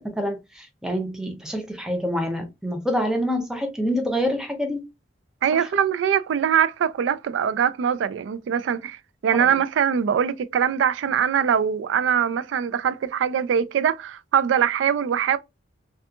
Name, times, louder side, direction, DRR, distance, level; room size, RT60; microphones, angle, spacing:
voice 1, 0.0-4.9 5.5-5.7 9.4-9.5, equal, 5° right, 0.5 m, -27 dB
voice 2, 5.4-15.4, right 8 dB, 75° right, 0.3 m, -22 dB
2.6 x 2.3 x 2.3 m
head